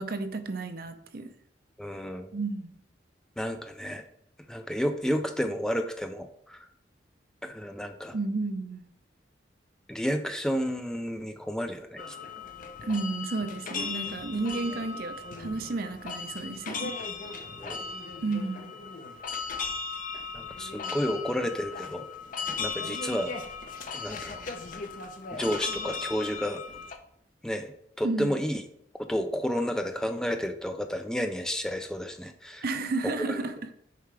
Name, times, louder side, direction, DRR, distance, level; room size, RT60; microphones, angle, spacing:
voice 1, 0.0-1.3 2.3-2.7 8.1-8.9 12.8-17.0 18.2-18.7 28.0-28.4 32.6-33.5, right 3 dB, 50° right, 0.6 m, -32 dB
voice 2, 1.8-2.3 3.4-4.0 4.5-6.7 7.4-8.2 9.9-12.2 17.6-17.8 20.3-22.0 22.6-23.3 23.9-24.5 25.3-26.6 27.4-27.7 28.0-28.6 29.0-32.6 33.0-33.4, equal, 5° left, 0.3 m, -31 dB
sound 1, 12.0-27.0, left 4 dB, 45° left, 0.6 m, -37 dB
6.7 x 4.8 x 3.3 m
head